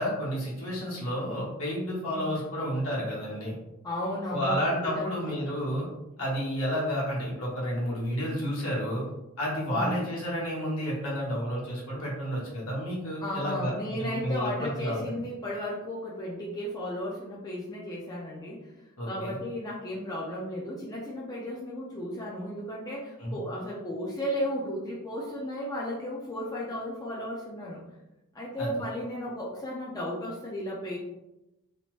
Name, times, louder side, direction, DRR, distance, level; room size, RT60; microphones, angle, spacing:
voice 1, 0.0-3.5 4.3-5.9 6.2-9.0 9.4-13.7 14.0-15.0 19.0-19.4 23.2-23.4 28.6-28.7, equal, 70° left, -5 dB, 1.1 m, -30 dB
voice 2, 2.1-2.4 3.8-5.3 9.7-10.0 13.2-18.7 19.1-27.8 28.3-31.0, equal, 15° left, -5 dB, 0.4 m, -34 dB
2.8 x 2.0 x 3.0 m, 0.95 s
head